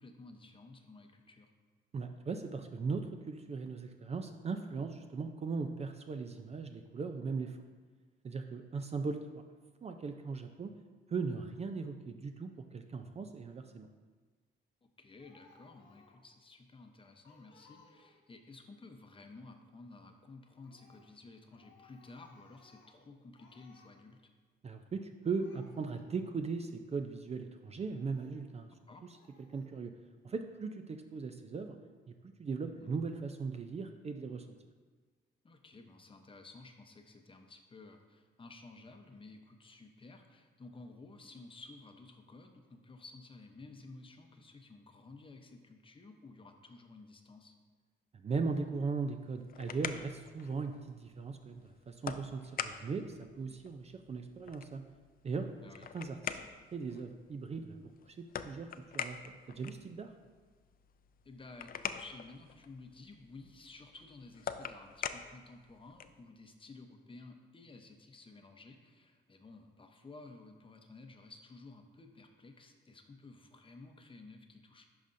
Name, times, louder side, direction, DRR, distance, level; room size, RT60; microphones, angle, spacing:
voice 1, 0.0-1.5 14.8-24.3 28.9-29.0 32.8-33.0 35.4-47.6 53.5-53.6 55.6-55.9 61.2-74.9, left 3 dB, 25° left, 4 dB, 0.8 m, -54 dB
voice 2, 1.9-7.6 8.2-9.2 9.8-10.7 11.1-13.9 24.6-28.7 29.5-29.9 30.2-31.8 32.2-34.5 48.1-54.8 55.2-55.5 55.9-56.4 56.7-58.7 58.9-59.2 59.5-60.1, right 4 dB, 30° right, 6 dB, 0.4 m, -38 dB
Speech, 15.2-16.3 16.8-16.9 17.2-18.3 20.5-21.1 21.5-23.0 23.4-23.9 24.9-25.0 25.2-26.3 26.9-27.0 27.9-28.4 29.1-29.7, left 4 dB, 80° left, 1.2 m, -64 dB
sound 1, 49.2-66.3, left 8 dB, 45° left, 0.4 m, -45 dB
11.0 x 5.0 x 2.6 m, 1.4 s
cardioid pair, 90°, 20 cm